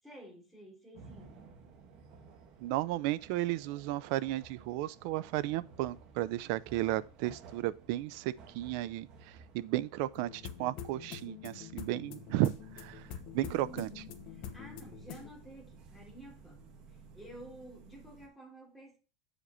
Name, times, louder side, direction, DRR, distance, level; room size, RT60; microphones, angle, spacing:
voice 1, 0.0-1.5 13.3-14.0 14.5-16.7 17.1-19.0, right 1 dB, ahead, 3.2 m, -51 dB
sound 1, 0.9-18.3, right 5 dB, 35° right, 1.3 m, -55 dB
voice 2, 2.6-9.1 9.5-13.0 13.3-13.9, right 15 dB, 55° right, 0.5 m, -34 dB
sound 2, 10.2-15.3, left 9 dB, 45° left, 1.1 m, -46 dB
8.0 x 5.1 x 5.6 m
supercardioid pair, 155°, 2 cm